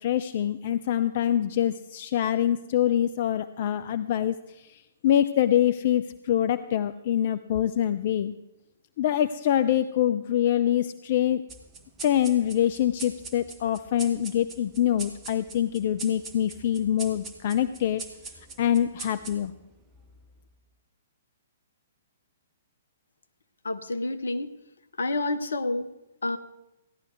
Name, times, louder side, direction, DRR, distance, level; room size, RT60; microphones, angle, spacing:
voice 1, 0.0-8.3 9.0-11.4 12.0-18.0 18.6-19.5, left 11 dB, 45° left, 12 dB, 0.4 m, -25 dB
sound 1, 11.5-20.4, right 3 dB, 15° right, 1.6 m, -43 dB
voice 2, 23.6-24.5 25.0-25.9 26.2-26.4, left 2 dB, 70° left, 10 dB, 0.9 m, -28 dB
16.0 x 11.0 x 4.6 m, 0.94 s
figure-of-eight pair, 120°, 0 cm